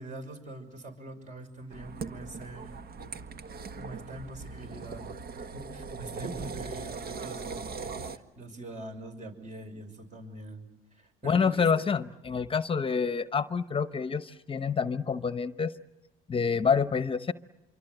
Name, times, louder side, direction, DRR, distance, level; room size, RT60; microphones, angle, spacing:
voice 1, 0.0-2.7 3.8-5.2 5.5-10.7 11.0-11.9, right 2 dB, 45° right, 7 dB, 6.1 m, -43 dB
sound 1, 1.7-8.2, right 4 dB, 60° right, 1.7 m, -40 dB
voice 2, 11.2-15.7 16.3-17.3, left 6 dB, 30° left, 12 dB, 0.9 m, -27 dB
26.5 x 24.0 x 8.0 m, 1.0 s
cardioid pair, 90°, 18 cm